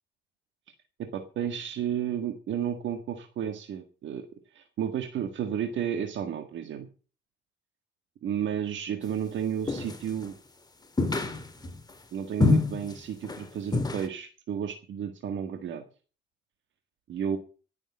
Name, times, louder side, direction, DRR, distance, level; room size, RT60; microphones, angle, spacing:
voice 1, 1.0-4.3 4.5-6.9 8.2-10.3 12.1-15.8 17.1-17.4, right 9 dB, 70° right, 7 dB, 1.8 m, -32 dB
sound 1, 9.7-10.3 11.0-11.8 12.4-13.0 13.2-13.4 13.7-14.1, left 3 dB, 20° left, 2.0 m, -26 dB
17.0 x 7.1 x 7.3 m, 0.38 s
cardioid pair, 90°, 20 cm